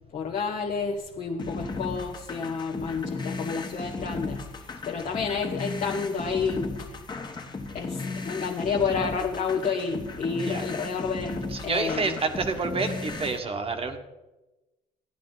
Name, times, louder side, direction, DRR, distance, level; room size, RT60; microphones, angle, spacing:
voice 1, 0.1-7.0 7.7-12.1, left 5 dB, 45° left, 2 dB, 1.1 m, -30 dB
sound 1, 1.4-13.4, left 3 dB, 25° left, 1.2 m, -35 dB
voice 2, 11.5-14.0, right 4 dB, 35° right, 6 dB, 1.3 m, -29 dB
13.5 x 10.0 x 4.0 m, 1.1 s
cardioid pair, 110°, 17 cm